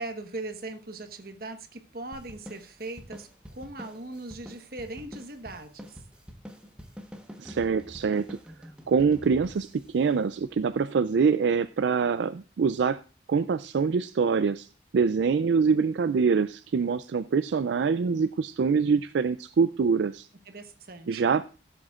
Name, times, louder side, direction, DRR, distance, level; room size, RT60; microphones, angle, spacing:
voice 1, 0.0-6.0 20.5-21.4, right 2 dB, 50° right, 7 dB, 1.2 m, -39 dB
sound 1, 2.1-11.0, equal, 5° right, 1.1 m, -47 dB
voice 2, 7.4-8.4 8.9-13.0 13.3-14.7 14.9-20.3 21.1-21.4, right 5 dB, 75° right, 13 dB, 0.4 m, -25 dB
16.5 x 7.8 x 2.4 m, 0.35 s
head